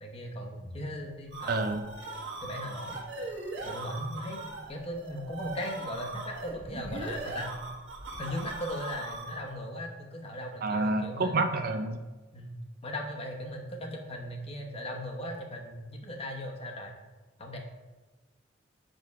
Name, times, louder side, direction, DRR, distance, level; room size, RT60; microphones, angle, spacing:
voice 1, 0.0-1.7 2.4-2.9 3.6-7.5 8.2-11.8 12.3-12.5 12.8-17.0 17.4-17.6, equal, 30° left, 1 dB, 1.0 m, -38 dB
sound 1, 1.0-9.5, right 2 dB, 75° right, 1.4 m, -40 dB
voice 2, 1.5-1.8 10.6-12.0, right 2 dB, 55° right, 7 dB, 0.5 m, -28 dB
6.1 x 5.3 x 4.7 m, 1.2 s
head